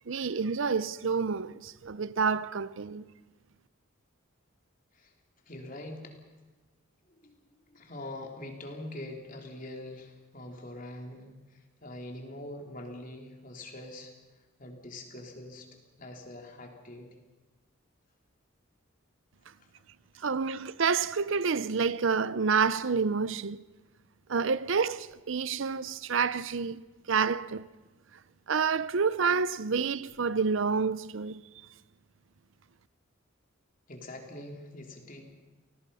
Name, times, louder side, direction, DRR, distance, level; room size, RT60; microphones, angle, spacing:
voice 1, 0.1-3.0 20.2-23.6 24.3-26.8 27.1-27.7 28.5-31.4, right 5 dB, 60° right, 0.6 m, -28 dB
voice 2, 5.5-6.2 7.2-14.1 14.6-15.7 16.0-17.1 33.9-35.4, left 1 dB, 40° left, 3.3 m, -44 dB
29.0 x 19.0 x 5.6 m
head